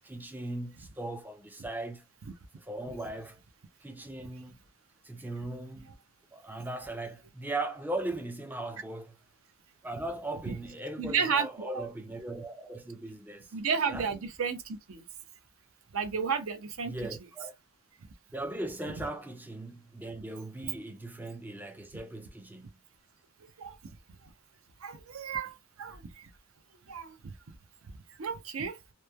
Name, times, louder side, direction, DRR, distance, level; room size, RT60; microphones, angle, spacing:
voice 1, 0.0-2.0 2.6-3.4 3.8-4.6 5.0-5.9 6.3-9.1 9.8-13.5 13.9-14.1 16.9-17.5 18.3-22.7, right 2 dB, 10° right, 0.3 m, -38 dB
voice 2, 11.0-11.8 13.5-15.0 15.9-17.0 19.0-19.1 20.6-20.7 23.6-23.8 24.8-26.3 26.9-27.3 28.2-28.8, right 6 dB, 70° right, 0.6 m, -32 dB
3.0 x 2.1 x 2.2 m
head